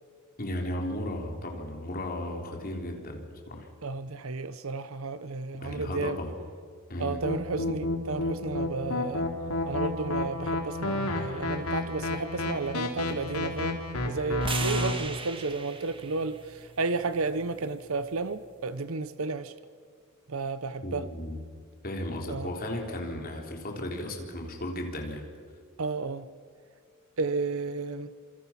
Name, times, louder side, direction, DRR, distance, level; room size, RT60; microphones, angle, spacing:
voice 1, 0.4-3.7 5.6-6.3 6.9-7.2 20.8-21.4 21.8-25.3, left 1 dB, 40° left, 3.7 m, -35 dB
voice 2, 3.8-6.2 7.0-9.2 9.7-19.5 20.3-21.0 22.3-22.5 25.8-26.3 27.2-28.1, right 3 dB, 65° right, 0.8 m, -32 dB
sound 1, 7.2-14.9, left 2 dB, 80° left, 3.3 m, -30 dB
sound 2, 14.4-18.6, right 4 dB, 25° right, 1.6 m, -39 dB
29.0 x 27.0 x 5.9 m
head